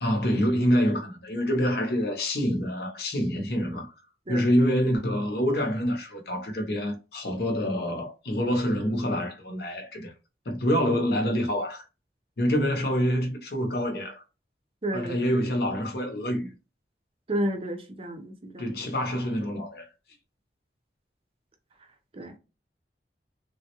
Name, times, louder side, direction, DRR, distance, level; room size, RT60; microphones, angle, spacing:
voice 1, 0.0-3.9 4.3-10.1 10.5-11.8 12.4-14.2 14.9-16.5 18.6-19.9, equal, 60° left, 0.7 m, -26 dB
voice 2, 14.8-15.2 17.3-18.7 22.1-22.4, right 1 dB, 30° right, 0.5 m, -31 dB
3.4 x 2.1 x 2.9 m
head